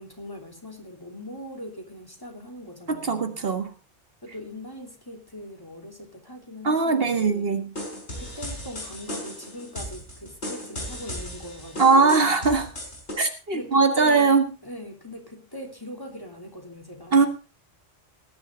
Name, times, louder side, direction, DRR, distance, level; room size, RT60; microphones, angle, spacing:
voice 1, 0.0-3.4 4.2-7.5 8.2-12.4 13.5-14.3 14.6-17.2, equal, 20° left, 3 dB, 3.2 m, -41 dB
voice 2, 2.9-3.7 6.6-7.7 11.8-12.6 13.2-14.4 17.1-17.3, right 4 dB, 60° right, 7 dB, 1.7 m, -20 dB
sound 1, 7.8-13.1, equal, 80° left, 5.2 m, -36 dB
19.5 x 11.0 x 3.8 m, 0.31 s
omnidirectional pair, 1.1 m